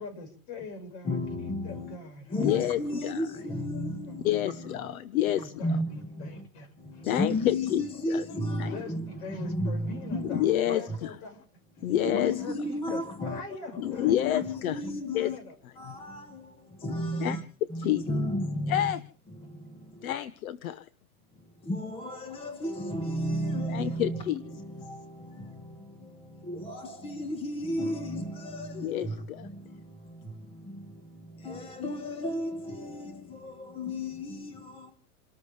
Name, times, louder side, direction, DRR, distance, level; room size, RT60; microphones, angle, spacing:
voice 1, 0.0-3.1 3.4-3.6 5.3-6.7 6.9-7.0 8.6-11.4 12.2-14.4 15.1-15.5 17.1-17.3, left 3 dB, 45° left, 5.6 m, -43 dB
voice 2, 1.0-2.0 2.3-4.9 5.3-6.5 6.8-10.5 10.9-11.0 11.8-15.4 15.7-17.4 17.7-18.9 19.3-20.1 21.3-34.9, left 1 dB, 10° left, 1.5 m, -34 dB
voice 3, 2.4-3.1 4.2-5.5 7.0-7.8 8.1-8.2 8.6-8.7 10.3-11.1 11.8-12.3 13.8-14.8 15.1-15.3 17.2-17.4 17.8-18.0 18.7-19.0 20.0-20.8 23.7-24.4 28.7-29.5, left 12 dB, 65° left, 1.1 m, -28 dB
29.0 x 13.5 x 3.3 m
supercardioid pair, 160°, 46 cm